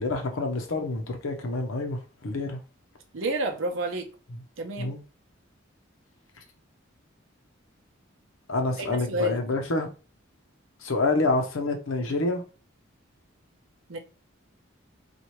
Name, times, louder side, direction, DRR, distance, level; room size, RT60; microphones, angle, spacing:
voice 1, 0.0-2.6 4.8-5.0 8.5-9.9 10.8-12.4, left 2 dB, 80° left, 0.7 m, -27 dB
voice 2, 3.1-4.1 4.6-5.0 8.8-9.4 13.9-14.0, right 2 dB, 75° right, 0.7 m, -30 dB
4.3 x 2.4 x 3.1 m
head